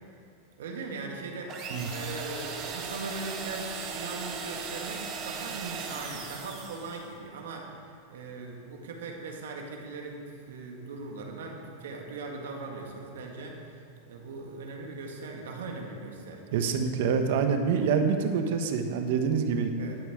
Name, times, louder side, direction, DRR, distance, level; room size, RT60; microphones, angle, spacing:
voice 1, 0.6-1.6 1.9-7.8 8.1-13.8 14.1-16.4 19.8-20.0, right 3 dB, 85° right, 1 dB, 1.9 m, -39 dB
sound 1, 1.5-7.1, right 5 dB, 40° right, 1.5 m, -38 dB
voice 2, 16.5-19.7, right 6 dB, 65° right, 6 dB, 1.1 m, -26 dB
12.0 x 5.6 x 7.8 m, 2.4 s
supercardioid pair, 140°, 0 cm